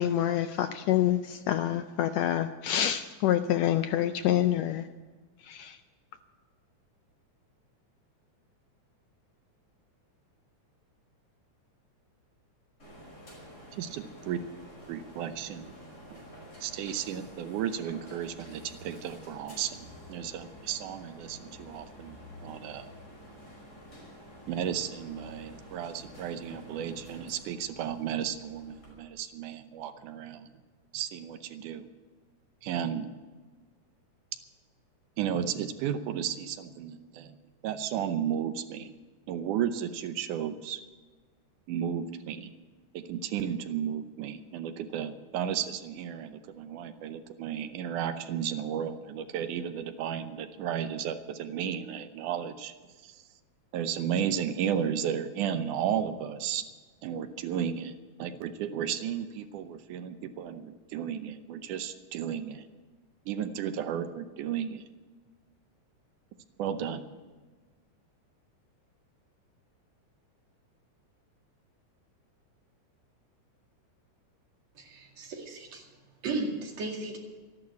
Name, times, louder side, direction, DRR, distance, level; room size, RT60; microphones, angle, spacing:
voice 1, 0.0-4.8 5.4-5.8, left 11 dB, 80° left, 9 dB, 1.6 m, -27 dB
sound 1, 12.8-28.9, equal, 20° left, 5.9 m, -49 dB
voice 2, 13.8-14.4 14.9-15.7 16.1-16.2 16.6-22.9 24.5-30.5 30.9-31.9 32.6-33.1 35.2-37.4 37.6-38.9 39.3-40.8 41.7-42.5 42.9-52.7 53.0-53.2 53.7-56.6 57.0-62.7 63.3-64.9 66.6-67.0, right 9 dB, 90° right, 10 dB, 2.4 m, -34 dB
voice 3, 74.7-75.9 76.2-77.2, right 3 dB, 60° right, 1 dB, 3.4 m, -35 dB
13.5 x 11.5 x 8.2 m, 1.4 s
omnidirectional pair, 3.5 m